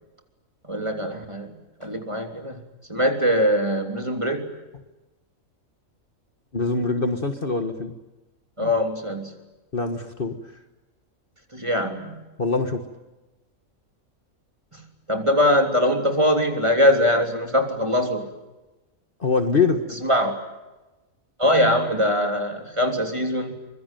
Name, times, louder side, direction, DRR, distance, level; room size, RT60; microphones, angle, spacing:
voice 1, 0.7-1.5 1.8-2.6 2.9-4.5 8.6-9.3 11.5-12.2 14.7-14.8 15.1-18.3 20.0-20.4 21.4-23.5, equal, 20° right, 4 dB, 3.3 m, -22 dB
voice 2, 6.5-7.9 8.6-8.7 9.7-10.4 12.4-12.8 19.2-19.8, left 4 dB, 40° left, 7 dB, 1.7 m, -23 dB
24.5 x 23.0 x 9.2 m, 1.1 s
omnidirectional pair, 1.4 m